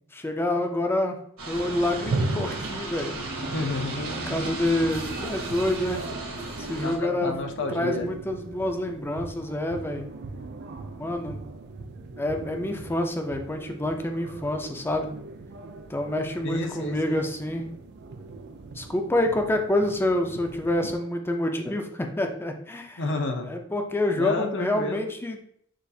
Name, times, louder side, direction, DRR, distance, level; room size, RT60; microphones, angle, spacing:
voice 1, 0.1-1.2 1.5-3.1 4.3-6.1 6.6-7.3 7.7-10.1 11.0-11.5 12.2-15.1 15.9-17.6 18.7-23.1 23.4-25.4, left 1 dB, 10° left, 4 dB, 0.4 m, -27 dB
sound 1, 1.4-7.0, right 2 dB, 70° right, 1.2 m, -35 dB
sound 2, 1.5-21.0, right 3 dB, 55° right, 0.4 m, -38 dB
voice 2, 3.4-4.5 6.8-8.1 16.4-17.2 23.0-23.5 24.2-25.0, left 3 dB, 60° left, 4 dB, 0.6 m, -30 dB
6.2 x 2.4 x 2.7 m, 0.67 s
head